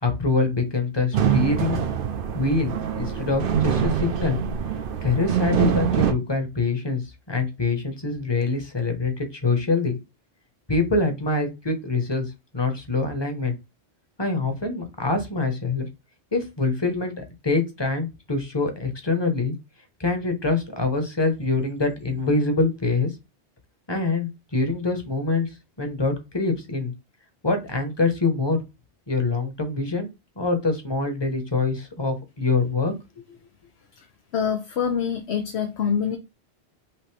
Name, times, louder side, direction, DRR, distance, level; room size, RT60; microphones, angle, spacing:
voice 1, 0.0-1.8 2.3-4.4 5.0-7.0 7.3-10.0 10.7-13.6 14.2-15.9 16.3-19.5 20.0-23.1 23.9-25.5 25.8-26.9 27.4-28.6 29.1-30.1 30.4-32.9 33.3-33.4, left 3 dB, 25° left, 1.1 m, -25 dB
sound 1, 1.1-6.1, right 8 dB, 60° right, 0.8 m, -24 dB
voice 2, 34.3-36.2, left 7 dB, 70° left, 1.0 m, -25 dB
5.9 x 2.7 x 3.3 m
omnidirectional pair, 1.1 m